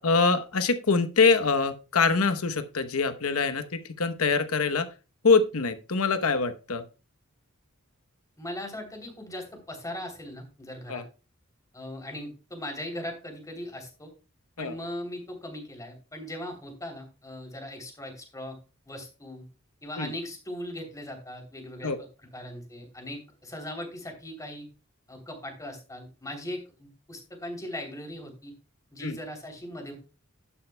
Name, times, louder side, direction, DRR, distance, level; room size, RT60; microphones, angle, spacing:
voice 1, 0.0-4.9 5.2-6.8 10.9-11.0 14.6-14.7 20.0-20.1 21.8-22.0 29.0-29.2, left 4 dB, 90° left, 10 dB, 1.0 m, -24 dB
voice 2, 8.4-11.0 11.7-14.1 14.6-18.6 18.8-19.4 19.8-22.1 22.3-24.7 25.1-28.5 28.9-30.0, left 1 dB, 15° left, 3 dB, 3.1 m, -39 dB
11.5 x 10.0 x 2.2 m, 0.32 s
head